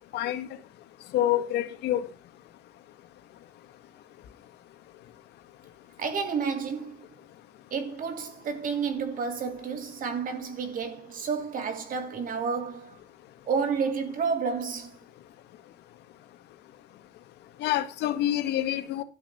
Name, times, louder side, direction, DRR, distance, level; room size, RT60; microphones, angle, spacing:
voice 1, 0.1-0.5 1.1-2.1 17.6-19.0, left 12 dB, 80° left, 1.9 m, -27 dB
voice 2, 6.0-7.0 7.7-13.0 13.5-15.0, right 5 dB, 55° right, 3.1 m, -30 dB
13.0 x 6.8 x 7.0 m
cardioid pair, 110°, 17 cm